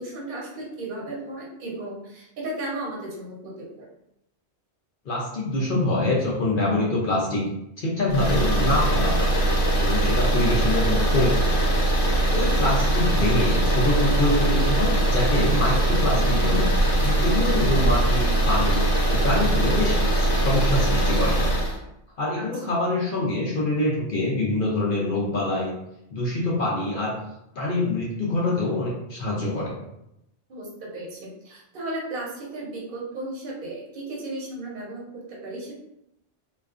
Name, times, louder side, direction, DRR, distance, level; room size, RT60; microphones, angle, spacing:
voice 1, 0.0-3.9 12.4-12.5 16.0-16.3 22.3-22.4 30.5-35.7, right 2 dB, 50° right, -4 dB, 0.8 m, -35 dB
voice 2, 5.1-7.4 7.8-9.3 9.8-11.6 12.3-16.7 17.0-18.8 19.1-21.4 22.2-25.7 26.1-27.1 27.6-29.8, left 1 dB, 60° left, -4 dB, 0.6 m, -25 dB
sound 1, 8.1-21.8, right 1 dB, 80° left, 1.1 m, -21 dB
2.3 x 2.2 x 2.4 m, 0.81 s
omnidirectional pair, 1.3 m